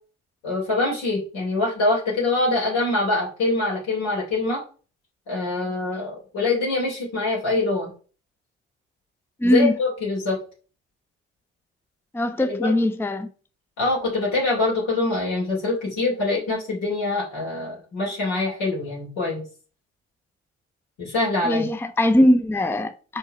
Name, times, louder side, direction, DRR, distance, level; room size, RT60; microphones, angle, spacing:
voice 1, 0.4-4.6 5.3-7.9 9.4-10.4 12.4-12.7 13.8-19.4 21.0-21.7, left 2 dB, 65° left, 2.9 m, -24 dB
voice 2, 9.4-9.8 12.1-13.3 21.4-23.2, equal, 5° left, 0.6 m, -20 dB
5.8 x 4.5 x 4.2 m
figure-of-eight pair, 45°, 34 cm